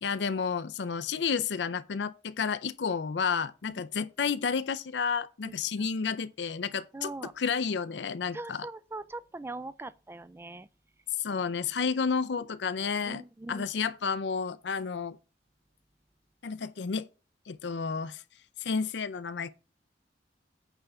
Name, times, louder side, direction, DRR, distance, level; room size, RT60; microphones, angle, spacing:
voice 1, 0.0-8.7 11.2-13.2 13.5-15.2 16.4-17.1 17.5-18.2 18.6-19.5, left 5 dB, 70° left, 0.5 m, -31 dB
voice 2, 5.4-5.9 6.9-7.3 8.3-10.7 11.3-11.4 13.1-13.7, right 2 dB, 15° right, 0.4 m, -41 dB
9.0 x 3.6 x 6.7 m
head